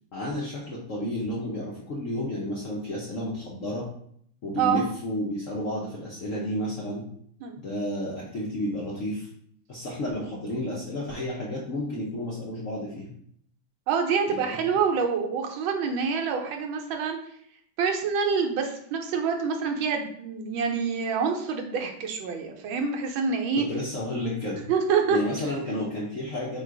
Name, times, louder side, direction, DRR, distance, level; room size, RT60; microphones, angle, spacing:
voice 1, 0.1-3.9 4.4-7.0 7.6-9.3 9.7-13.1 14.3-14.6 23.5-24.7 25.1-26.6, left 1 dB, 65° left, -5 dB, 0.8 m, -31 dB
voice 2, 13.9-17.2 17.8-23.7 24.7-25.2, right 6 dB, 75° right, 3 dB, 1.4 m, -26 dB
3.7 x 2.4 x 4.6 m, 0.64 s
omnidirectional pair, 2.3 m